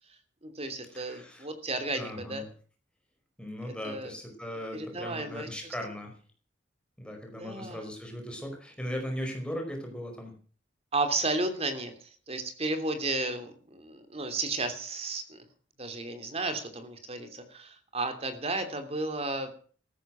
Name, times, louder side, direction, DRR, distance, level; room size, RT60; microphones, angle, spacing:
voice 1, 0.4-2.4 3.6-4.1 4.7-5.7 7.4-7.8 10.9-15.4 15.8-19.5, right 2 dB, 35° right, 8 dB, 3.1 m, -33 dB
voice 2, 0.9-1.5 1.9-2.4 3.4-6.1 7.0-10.3, equal, 5° left, 2 dB, 5.0 m, -38 dB
15.0 x 13.0 x 6.3 m, 0.43 s
head